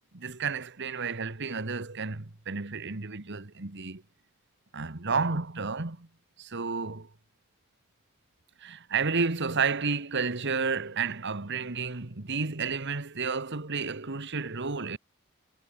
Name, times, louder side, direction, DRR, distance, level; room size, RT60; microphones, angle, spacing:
voice 1, 0.1-4.0 4.7-6.1 6.4-7.1 8.6-15.0, right 5 dB, 55° right, 1.6 m, -31 dB
head